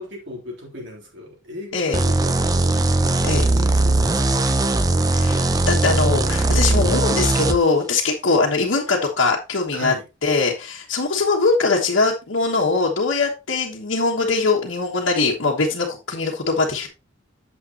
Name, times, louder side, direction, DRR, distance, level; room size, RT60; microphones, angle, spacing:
voice 1, 0.0-4.6 9.7-10.0, left 1 dB, 65° right, 3.5 m, -37 dB
sound 1, 1.9-7.6, right 2 dB, 20° right, 0.6 m, -19 dB
voice 2, 5.1-9.9 10.2-16.9, left 3 dB, 75° left, 1.4 m, -21 dB
8.8 x 7.6 x 2.9 m
head